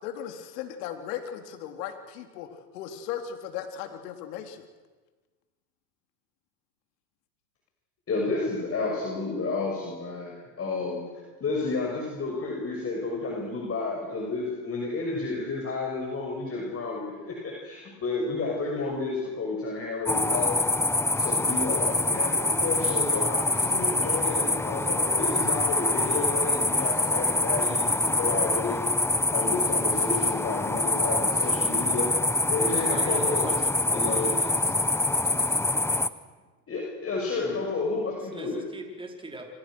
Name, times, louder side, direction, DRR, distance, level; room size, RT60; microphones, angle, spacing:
voice 1, 0.0-2.5 2.7-4.6, left 9 dB, 70° left, 5 dB, 4.0 m, -37 dB
voice 2, 8.1-11.0 11.4-20.7 21.2-28.8 29.3-32.1 32.5-33.5 33.9-34.3 36.7-38.6, left 3 dB, 30° left, -1 dB, 6.4 m, -31 dB
sound 1, 20.1-36.1, left 2 dB, 5° left, 1.0 m, -25 dB
voice 3, 32.9-34.8 35.4-35.6 38.3-39.5, right 2 dB, 10° right, 2 dB, 4.9 m, -41 dB
29.5 x 26.0 x 6.4 m, 1.3 s
supercardioid pair, 110°, 49 cm